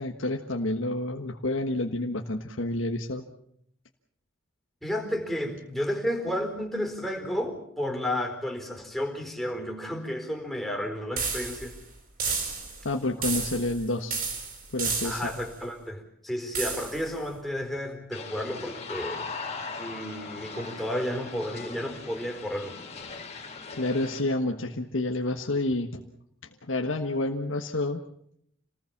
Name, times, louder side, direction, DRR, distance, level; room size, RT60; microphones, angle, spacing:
voice 1, 0.0-3.3 12.8-14.2 14.7-15.3 23.3-23.5 23.8-26.0 26.6-28.0, left 2 dB, 80° left, 3 dB, 1.5 m, -29 dB
voice 2, 4.8-11.8 15.0-19.2 19.8-22.8, equal, ahead, 2 dB, 4.4 m, -32 dB
sound 1, 11.2-11.8 12.2-12.8 13.2-13.8 14.1-15.4 16.5-17.1, right 5 dB, 50° right, 6.0 m, -31 dB
sound 2, 18.1-24.2, left 4 dB, 35° left, 3.8 m, -39 dB
28.0 x 19.5 x 7.3 m, 0.71 s
head